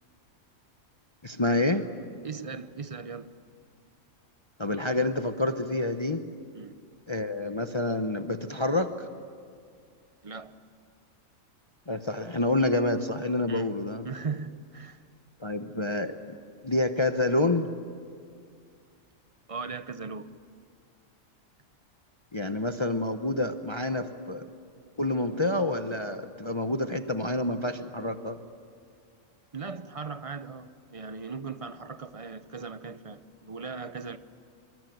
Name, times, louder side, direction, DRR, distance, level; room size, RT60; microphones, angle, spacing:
voice 1, 1.2-1.8 4.6-6.2 7.1-9.1 11.9-14.0 15.4-16.4 16.6-17.7 22.3-24.5 25.0-28.4, left 2 dB, 25° left, 0.8 m, -28 dB
voice 2, 2.2-3.3 6.5-6.8 10.2-10.6 13.5-13.7 14.0-15.0 19.5-20.4 29.5-34.2, right 5 dB, 30° right, 0.7 m, -38 dB
24.0 x 24.0 x 9.4 m
omnidirectional pair, 1.4 m